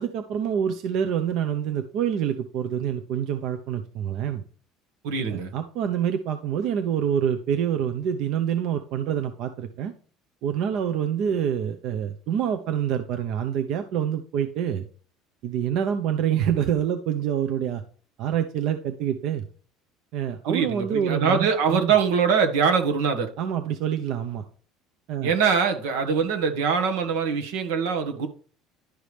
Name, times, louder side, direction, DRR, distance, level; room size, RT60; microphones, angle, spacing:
voice 1, 0.0-4.4 5.3-9.9 10.4-14.8 15.4-17.8 18.2-19.4 20.1-21.9 23.4-24.4 25.1-25.3, right 9 dB, 60° right, 0.8 m, -26 dB
voice 2, 5.0-5.5 20.5-23.3 25.2-28.3, right 6 dB, 90° right, 1.6 m, -23 dB
11.5 x 4.8 x 3.4 m
cardioid pair, 135°, 0 cm